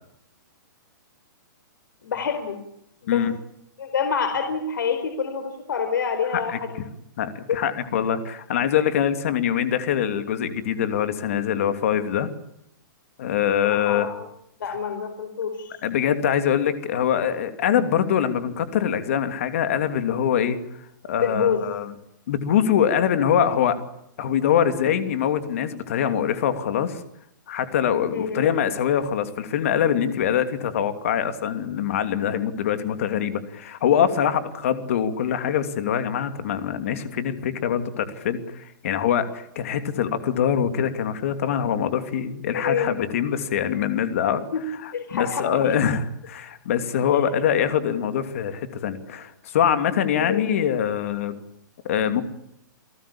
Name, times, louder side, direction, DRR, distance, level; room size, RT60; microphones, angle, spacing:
voice 1, 2.0-2.6 3.0-3.2 3.8-6.9 7.5-7.6 13.6-14.2 14.6-15.8 21.2-21.6 28.1-28.4 42.5-42.9 44.5-44.6 44.9-45.7 47.1-47.2 50.3-50.5, left 6 dB, 75° left, 7 dB, 4.6 m, -27 dB
voice 2, 7.2-12.3 13.2-14.1 15.8-20.6 21.0-21.9 22.3-23.8 24.2-27.0 27.5-44.4 44.8-51.3 51.8-52.2, left 9 dB, 40° left, 9 dB, 2.8 m, -23 dB
30.0 x 19.0 x 8.7 m, 0.78 s
hypercardioid pair, 180°, 11 cm